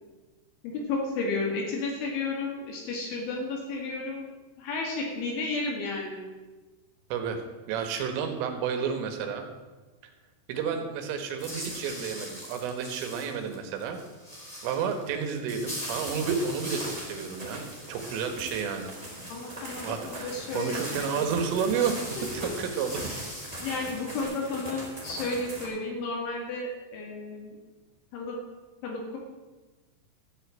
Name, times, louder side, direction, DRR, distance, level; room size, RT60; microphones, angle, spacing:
voice 1, 0.6-4.3 4.6-6.2 19.3-21.3 22.2-22.5 23.6-27.6 28.1-28.4 28.8-29.2, left 3 dB, 70° left, -1 dB, 4.4 m, -32 dB
voice 2, 7.7-9.5 10.5-14.0 14.6-18.9 19.8-22.0 22.4-23.0, right 6 dB, 75° right, 6 dB, 3.9 m, -31 dB
sound 1, 11.4-24.2, equal, 10° left, 1.7 m, -42 dB
sound 2, 15.8-25.7, right 1 dB, 10° right, 2.1 m, -41 dB
13.5 x 6.6 x 8.7 m, 1.2 s
omnidirectional pair, 5.9 m